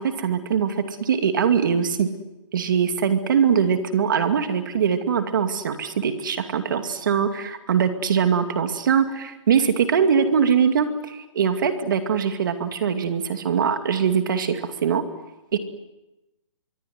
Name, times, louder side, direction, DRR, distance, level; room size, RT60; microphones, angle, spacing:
voice 1, 0.0-2.1 2.5-15.0 15.5-15.6, right 7 dB, 40° right, 8 dB, 2.5 m, -22 dB
25.5 x 23.5 x 9.5 m, 0.99 s
hypercardioid pair, 180°, 17 cm